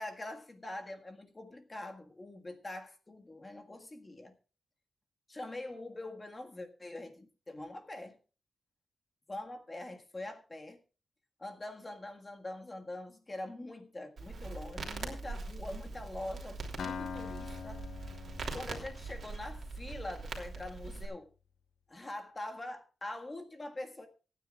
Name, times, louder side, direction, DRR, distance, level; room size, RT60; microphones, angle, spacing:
voice 1, 0.0-4.3 5.3-8.2 9.3-10.8 11.4-17.8 18.5-21.3 21.9-24.1, left 1 dB, 20° left, 1.7 m, -44 dB
Crackle, 14.2-21.1, right 3 dB, 45° right, 3.1 m, -42 dB
Acoustic guitar, 16.8-20.6, left 6 dB, 70° left, 1.2 m, -44 dB
24.5 x 9.6 x 2.4 m
wide cardioid pair, 180°, 0 cm